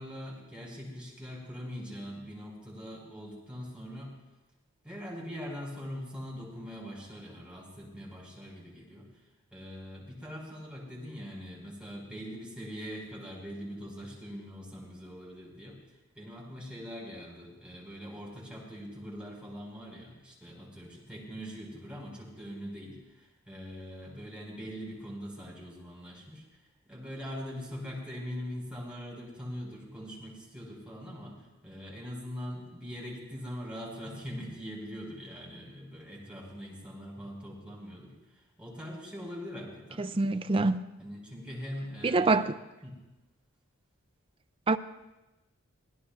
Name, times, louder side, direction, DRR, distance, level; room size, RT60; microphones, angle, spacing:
voice 1, 0.0-4.1 4.8-9.1 9.5-26.6 26.9-40.0 41.0-42.5 42.8-43.0, equal, 5° right, 4.5 m, -42 dB
voice 2, 40.0-40.8 42.0-42.5 44.7-44.8, right 3 dB, 25° right, 0.4 m, -25 dB
24.5 x 16.5 x 2.4 m
head